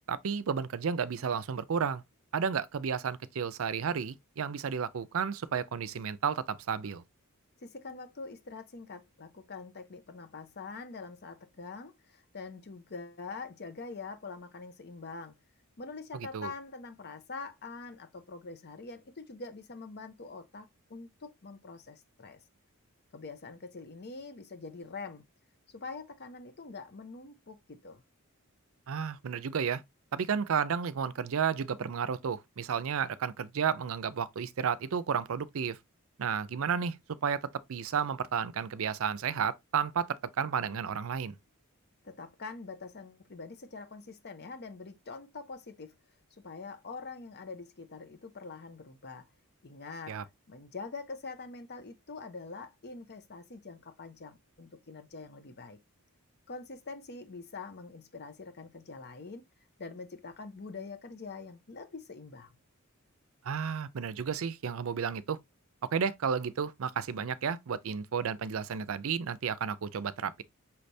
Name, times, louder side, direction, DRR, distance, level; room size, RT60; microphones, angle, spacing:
voice 1, 0.1-2.0 2.3-7.0 16.3-16.5 28.9-29.8 30.1-35.8 36.2-37.0 37.2-37.4 37.7-41.4 50.1-50.2 63.4-65.4 65.9-70.4, right 6 dB, 65° right, 0.5 m, -32 dB
voice 2, 7.6-15.4 15.8-22.4 23.1-25.2 25.7-28.0 42.0-45.9 46.4-49.3 49.6-50.2 50.5-55.8 56.5-59.5 59.8-62.5, left 4 dB, 50° left, 0.7 m, -44 dB
5.6 x 3.3 x 2.6 m
head